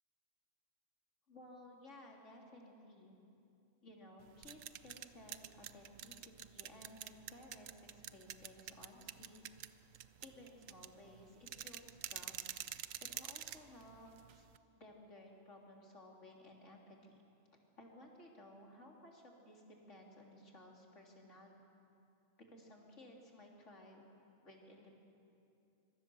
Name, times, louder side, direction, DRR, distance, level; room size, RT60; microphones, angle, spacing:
voice 1, 1.3-3.2 3.8-9.5 10.2-12.6 13.0-14.5 14.8-17.2 17.5-19.6 19.9-21.6 22.5-24.1 24.4-25.0, left 1 dB, 65° left, -1 dB, 3.5 m, -57 dB
sound 1, 4.2-14.6, right 10 dB, 80° right, 1.1 m, -48 dB
25.5 x 22.5 x 6.9 m, 2.7 s
omnidirectional pair, 1.3 m